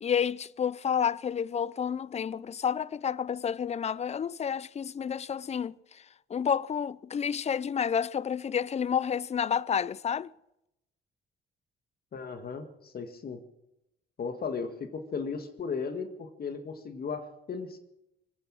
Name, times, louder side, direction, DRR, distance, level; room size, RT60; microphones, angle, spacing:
voice 1, 0.0-6.0 6.3-10.3, left 7 dB, 35° left, 0.5 m, -30 dB
voice 2, 12.1-13.4 14.2-17.8, left 5 dB, 50° left, 1.9 m, -36 dB
24.0 x 9.6 x 6.3 m
cardioid pair, 90°, 20 cm